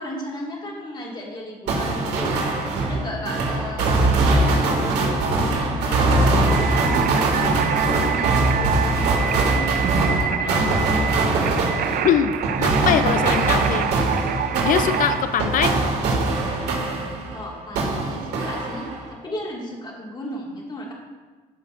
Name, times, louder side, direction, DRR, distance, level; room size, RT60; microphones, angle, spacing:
voice 1, 0.0-2.4 2.8-7.2 7.6-10.7 17.3-20.9, left 1 dB, 25° left, -2 dB, 1.9 m, -34 dB
sound 1, 1.7-17.4 17.8-19.1, right 2 dB, 80° right, 2.0 m, -22 dB
sound 2, 6.5-15.2, right 9 dB, 60° right, 0.6 m, -27 dB
voice 2, 12.0-13.9 14.6-15.8, left 9 dB, 50° left, 11 dB, 0.4 m, -22 dB
14.0 x 5.6 x 2.5 m, 1.3 s
cardioid pair, 110°, 17 cm